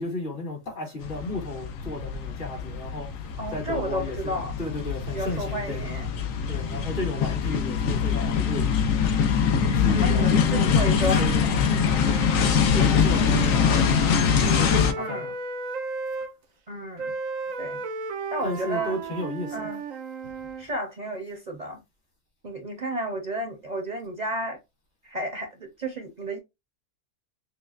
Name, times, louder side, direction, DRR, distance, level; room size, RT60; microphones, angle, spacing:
voice 1, 0.0-3.1 3.5-5.9 6.5-8.7 9.5-12.2 12.7-13.9 14.5-15.3 18.4-19.6, left 2 dB, 60° left, 2.5 m, -34 dB
sound 1, 1.0-14.9, left 6 dB, 85° left, 1.1 m, -23 dB
voice 2, 3.4-4.6 5.1-6.1 9.8-11.5 13.1-13.4 15.0-15.3 16.7-17.1 17.6-17.8 18.3-19.0 19.5-19.8 20.6-21.8 22.4-24.6 25.0-26.4, right 1 dB, 40° right, 0.8 m, -32 dB
Wind instrument woodwind instrument, 11.9-16.3 17.0-20.7, right 4 dB, 85° right, 1.1 m, -34 dB
6.3 x 2.2 x 2.4 m
omnidirectional pair, 1.3 m